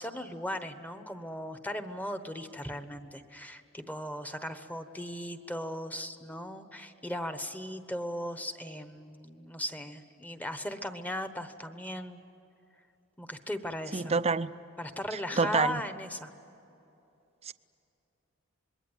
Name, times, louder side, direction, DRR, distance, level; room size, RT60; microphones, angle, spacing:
voice 1, 0.0-12.2 13.2-14.2 14.8-16.3, equal, 10° left, 1.1 m, -37 dB
voice 2, 13.9-14.5 15.4-15.8 17.5-17.6, right 4 dB, 30° right, 0.6 m, -27 dB
26.5 x 21.5 x 9.2 m
head